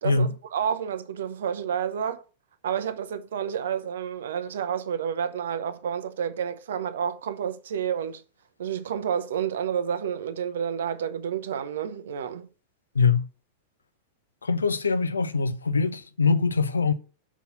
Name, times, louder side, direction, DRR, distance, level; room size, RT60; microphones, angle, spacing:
voice 1, 0.0-2.2 2.6-8.2 8.6-12.5, right 8 dB, 60° right, 0.7 m, -30 dB
voice 2, 12.9-13.3 14.4-16.9, left 4 dB, 75° left, 0.6 m, -23 dB
6.1 x 5.6 x 5.4 m
figure-of-eight pair, 90°, 0 cm